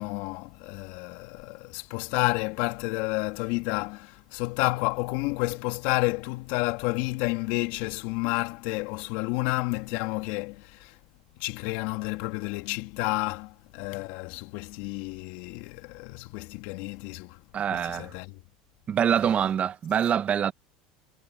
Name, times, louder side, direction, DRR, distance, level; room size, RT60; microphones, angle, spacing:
voice 1, 0.0-11.0 11.4-17.4 17.7-18.3 19.1-19.5, left 24 dB, 65° left, 2.7 m, -30 dB
voice 2, 17.5-18.1 18.9-20.5, right 8 dB, 35° right, 2.1 m, -25 dB
hypercardioid pair, 90°, 4 cm